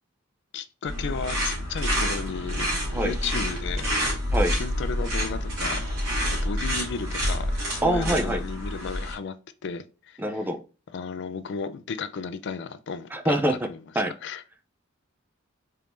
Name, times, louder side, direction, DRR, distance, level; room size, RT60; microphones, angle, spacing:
voice 1, 0.5-2.7 3.0-3.9 4.6-5.8 6.3-9.4 9.6-10.2 10.9-13.8 14.2-14.4, left 5 dB, 60° left, 0.4 m, -34 dB
sound 1, 0.8-9.1, equal, 90° right, 2.2 m, -28 dB
voice 2, 7.8-8.4 10.2-10.6 13.1-13.7 14.0-14.1, right 1 dB, 10° right, 0.4 m, -24 dB
4.4 x 3.5 x 2.5 m
head